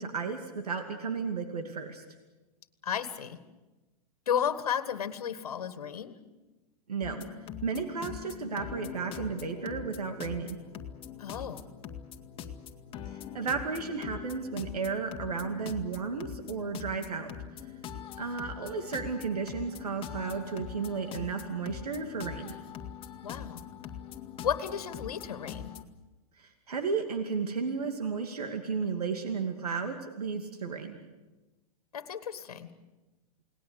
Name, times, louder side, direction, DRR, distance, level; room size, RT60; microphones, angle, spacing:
voice 1, 0.0-2.0 6.9-7.2 7.6-10.6 13.1-17.3 17.6-17.7 18.2-22.5 26.4-30.9, right 5 dB, 80° right, 5 dB, 2.5 m, -33 dB
voice 2, 2.8-3.4 4.3-6.1 11.2-11.6 23.2-23.6 24.4-25.7 31.9-32.7, left 8 dB, 70° left, 10 dB, 1.8 m, -33 dB
sound 1, 7.0-25.8, left 9 dB, 30° left, 2.1 m, -43 dB
29.5 x 19.5 x 8.2 m, 1.1 s
hypercardioid pair, 105°, 19 cm